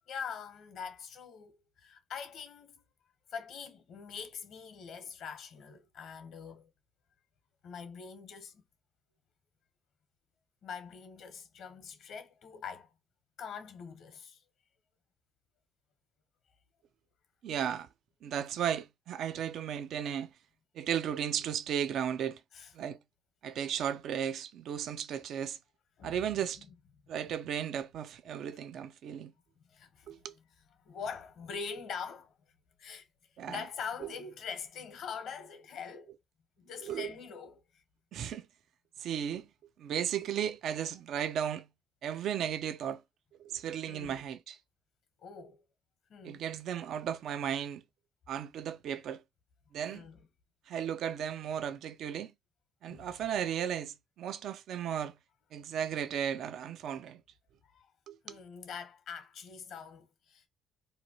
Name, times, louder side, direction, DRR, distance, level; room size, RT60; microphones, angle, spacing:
voice 1, 0.1-2.8 3.3-6.7 7.6-8.6 10.6-12.9 13.4-14.4 22.5-22.7 26.0-26.2 26.6-26.7 29.7-30.3 30.8-32.3 32.8-33.1 33.5-36.1 36.6-37.8 43.9-44.3 45.2-45.6 46.1-46.4 49.9-50.2 52.9-53.2 57.6-57.9 58.2-60.5, left 6 dB, 70° left, 0.9 m, -44 dB
voice 2, 17.4-17.9 18.2-20.3 20.7-22.4 22.7-23.0 23.4-25.6 26.0-26.6 27.1-29.3 30.1-30.3 33.4-33.6 34.0-34.1 36.8-37.1 38.1-38.5 39.0-39.5 39.8-41.7 42.0-43.0 43.4-44.6 46.2-47.8 48.3-49.2 49.7-50.1 50.7-52.3 52.8-55.2 55.5-57.2 58.1-58.4, right 9 dB, 65° right, 0.3 m, -35 dB
2.8 x 2.2 x 2.8 m
supercardioid pair, 70°, 0 cm